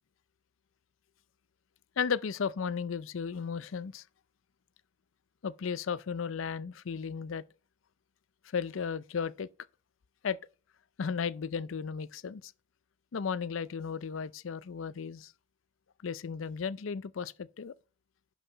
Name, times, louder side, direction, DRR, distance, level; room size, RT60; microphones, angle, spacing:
voice 1, 2.0-4.0 5.4-7.4 8.5-9.5 10.2-10.4 11.0-12.5 13.1-15.3 16.0-17.7, left 6 dB, 75° left, 0.5 m, -34 dB
11.0 x 5.6 x 4.1 m
head